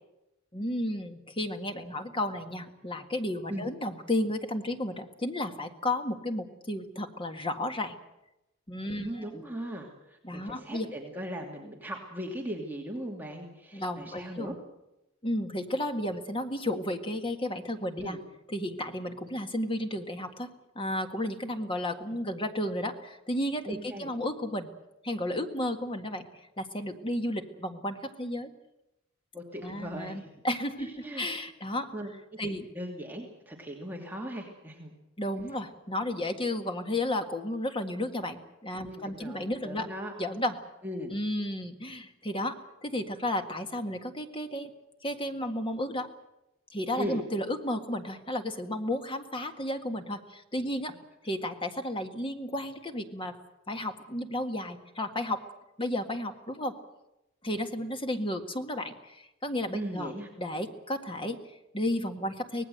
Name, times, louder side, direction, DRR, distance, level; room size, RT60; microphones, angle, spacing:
voice 1, 0.5-8.0 8.7-9.1 10.2-10.9 13.7-14.6 15.2-18.2 18.5-20.5 20.8-24.7 25.0-26.3 26.6-28.5 29.6-31.9 32.4-32.7 35.2-39.9 40.2-40.6 41.1-44.7 45.0-46.1 46.7-50.9 51.2-53.3 53.7-55.4 55.8-56.7 57.4-60.1 60.4-62.6, left 1 dB, 25° left, 6 dB, 1.9 m, -33 dB
voice 2, 8.8-14.6 18.0-18.2 23.6-24.1 29.3-30.3 30.8-31.3 31.9-34.9 38.8-40.1 40.8-41.2 47.0-47.2 59.7-60.3, equal, 10° right, 0 dB, 2.7 m, -38 dB
25.0 x 19.0 x 7.9 m, 0.91 s
head